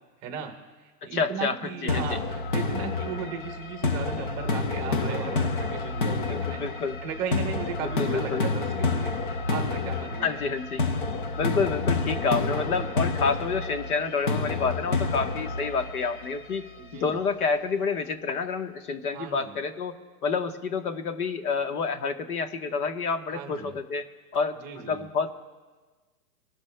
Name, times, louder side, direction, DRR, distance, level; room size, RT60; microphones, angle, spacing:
voice 1, 0.2-10.4 12.5-13.0 16.8-17.2 19.1-19.6 23.3-23.7 24.6-25.1, right 7 dB, 20° right, 4 dB, 0.8 m, -37 dB
voice 2, 1.0-1.6 1.8-2.2 6.3-7.0 7.8-8.4 10.2-10.8 11.3-16.6 16.9-24.1 24.3-24.6 24.9-25.3, left 5 dB, 65° left, 7 dB, 1.3 m, -28 dB
sound 1, 1.9-16.8, left 3 dB, 35° left, 0.4 m, -29 dB
25.5 x 12.0 x 2.2 m, 1.3 s
hypercardioid pair, 160°, 47 cm